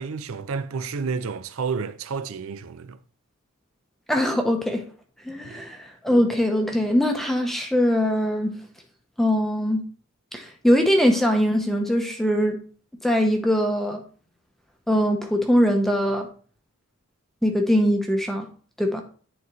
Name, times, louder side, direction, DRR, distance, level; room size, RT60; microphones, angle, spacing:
voice 1, 0.0-3.0 5.5-5.7, right 5 dB, 70° right, 0.5 m, -30 dB
voice 2, 4.1-4.8 5.3-8.5 9.2-9.8 10.3-12.6 13.0-14.0 14.9-16.3 17.4-18.5 18.8-19.0, equal, ahead, 0.7 m, -22 dB
9.8 x 4.0 x 3.1 m
head